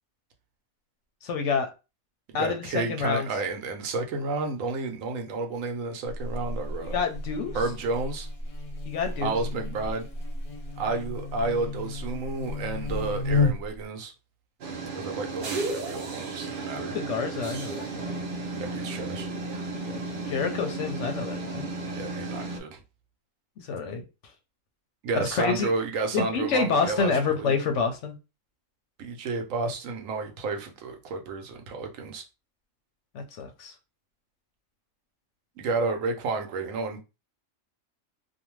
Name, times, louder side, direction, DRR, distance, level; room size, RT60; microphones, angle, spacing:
voice 1, 1.2-1.7 2.3-3.3 6.8-7.5 8.9-9.3 16.8-18.2 19.8-20.0 20.3-21.7 23.6-24.0 25.1-25.7 26.1-28.2 33.1-33.7, left 5 dB, 70° left, 0.8 m, -28 dB
voice 2, 2.4-7.0 7.5-8.3 9.2-10.1 10.8-14.1 14.9-16.9 18.5-19.3 22.0-22.8 25.0-27.6 29.0-32.2 35.6-37.0, right 3 dB, 75° right, 1.0 m, -31 dB
Buzz, 6.1-13.8, left 3 dB, 35° left, 0.7 m, -32 dB
sound 1, 14.6-22.6, right 3 dB, 55° right, 0.6 m, -34 dB
2.6 x 2.2 x 3.0 m
omnidirectional pair, 1.4 m